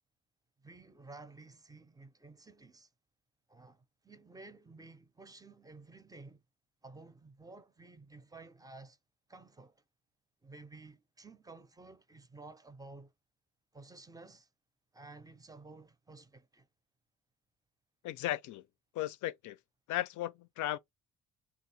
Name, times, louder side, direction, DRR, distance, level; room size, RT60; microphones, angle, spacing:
voice 1, 0.6-2.9 3.5-6.4 6.8-9.0 9.3-9.8 10.4-13.1 13.7-14.5 14.9-16.7, right 3 dB, 10° right, 0.5 m, -53 dB
voice 2, 18.0-18.6 18.9-19.6 19.9-20.8, left 14 dB, 75° left, 0.5 m, -36 dB
3.2 x 2.4 x 2.7 m
cardioid pair, 90°, 30 cm